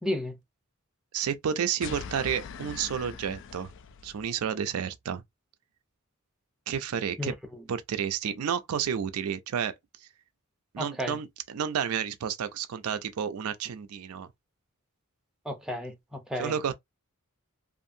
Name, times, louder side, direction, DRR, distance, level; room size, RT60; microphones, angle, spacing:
voice 1, 0.0-0.4 7.2-7.6 10.8-11.2 15.4-16.5, left 1 dB, ahead, 0.5 m, -33 dB
voice 2, 1.1-3.7 4.0-5.2 6.7-7.3 7.7-9.7 10.0-10.1 10.7-14.3 16.4-16.7, right 8 dB, 80° right, 0.4 m, -31 dB
sound 1, 1.8-4.4, left 6 dB, 55° left, 0.3 m, -42 dB
2.7 x 2.5 x 2.6 m
head